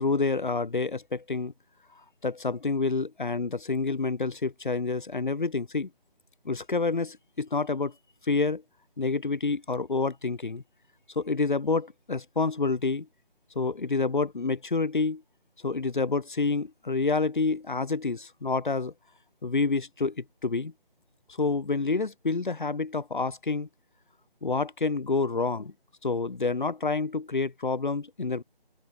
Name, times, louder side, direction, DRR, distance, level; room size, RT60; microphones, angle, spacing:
voice 1, 0.0-1.5 2.2-5.9 6.4-7.9 8.3-8.6 9.0-10.6 11.2-13.1 13.5-15.2 15.6-18.9 19.4-20.7 21.4-23.7 24.4-25.7 26.0-28.4, left 3 dB, 55° left, 2.7 m, -28 dB
open air
figure-of-eight pair, 170°, 30 cm